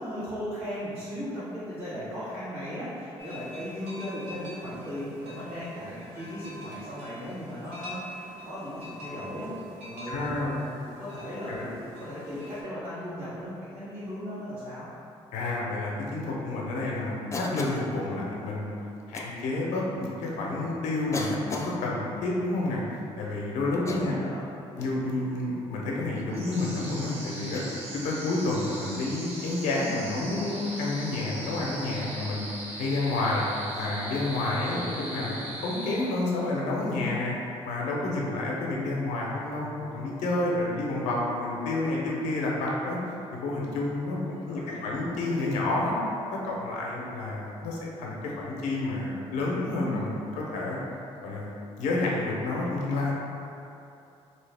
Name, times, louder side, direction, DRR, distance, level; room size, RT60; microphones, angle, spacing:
voice 1, 0.0-9.5 9.8-14.9 23.9-24.4 34.6-34.9 44.2-45.0, equal, 75° right, -15 dB, 1.5 m, -37 dB
sound 1, 3.2-12.6, equal, 90° right, 1.0 m, -44 dB
voice 2, 10.1-10.6 11.5-11.7 15.3-18.7 19.1-22.8 23.2-24.2 24.8-27.6 28.0-32.5 32.8-33.4 33.8-35.3 35.6-37.3 37.6-43.0 43.3-46.0 46.3-50.8 51.2-51.5 51.8-53.1, left 2 dB, 85° left, -3 dB, 0.6 m, -29 dB
Cough, 17.3-17.9 19.1-19.3 20.2-20.3 21.1-21.8 23.7-24.4 24.8-25.1 26.2-26.5 27.5-27.9 29.4-29.6 31.9-32.0 33.7-33.9, left 3 dB, 25° left, 0.4 m, -37 dB
sound 2, 26.3-36.5, right 1 dB, 55° right, 0.8 m, -40 dB
3.1 x 2.8 x 3.3 m, 2.7 s
supercardioid pair, 75°, 12 cm